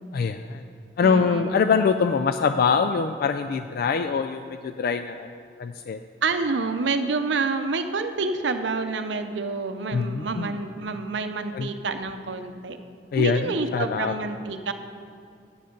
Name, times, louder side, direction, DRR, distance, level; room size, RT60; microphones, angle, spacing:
voice 1, 0.1-0.6 1.0-5.3 5.6-6.0 9.9-10.5 11.6-11.7 13.1-13.4 13.7-14.1, left 5 dB, 55° left, 8 dB, 0.3 m, -23 dB
voice 2, 1.0-1.7 6.2-12.8 13.2-14.7, right 4 dB, 80° right, 9 dB, 0.6 m, -28 dB
9.5 x 7.8 x 5.2 m, 2.4 s
head